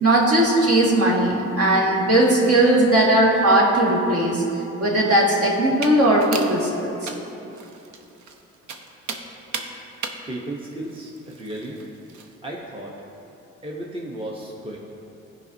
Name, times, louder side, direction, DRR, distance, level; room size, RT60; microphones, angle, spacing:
voice 1, 0.0-4.4 4.8-7.1, right 1 dB, 55° right, -3 dB, 1.8 m, -18 dB
sound 1, 5.7-12.3, right 5 dB, 70° right, 0.8 m, -37 dB
voice 2, 10.3-11.8 12.4-12.9 13.6-14.8, right 1 dB, 20° right, -3 dB, 0.9 m, -34 dB
15.5 x 5.2 x 2.7 m, 2.9 s
cardioid pair, 90°, 30 cm